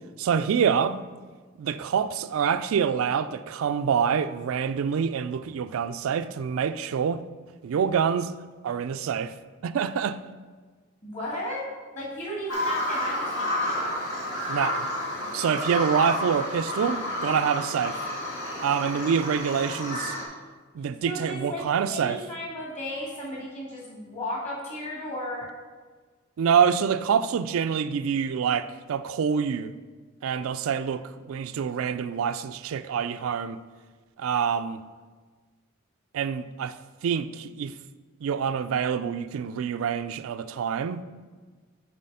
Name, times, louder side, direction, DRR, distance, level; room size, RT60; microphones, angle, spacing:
voice 1, 0.2-1.0 1.6-7.2 7.6-8.3 8.6-9.4 9.6-10.2 14.5-14.8 15.3-18.0 18.6-20.2 20.7-22.2 26.4-29.7 30.2-33.6 34.2-34.8 36.1-36.8 37.0-37.7 38.2-41.0, right 7 dB, 80° right, 0.3 m, -26 dB
voice 2, 11.0-11.6 11.9-13.9 21.1-25.5, equal, 35° left, 2.4 m, -34 dB
Bird vocalization bird call bird song, 12.5-20.2, left 1 dB, 75° left, 1.8 m, -30 dB
7.5 x 4.2 x 5.5 m
head